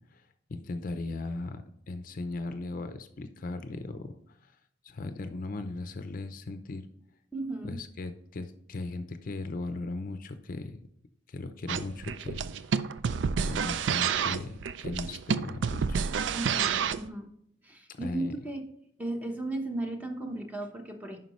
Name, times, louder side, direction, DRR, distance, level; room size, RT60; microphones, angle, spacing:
voice 1, 0.5-4.5 4.8-6.9 7.6-10.8 11.3-12.8 13.4-16.0 18.0-18.3, left 2 dB, 50° left, 9 dB, 0.5 m, -38 dB
voice 2, 7.3-7.8 16.3-17.3 17.6-18.7 19.0-21.2, right 2 dB, 10° right, 4 dB, 1.0 m, -35 dB
sound 1, 11.7-17.1, right 6 dB, 70° right, 0.4 m, -29 dB
9.3 x 5.7 x 3.1 m, 0.72 s
head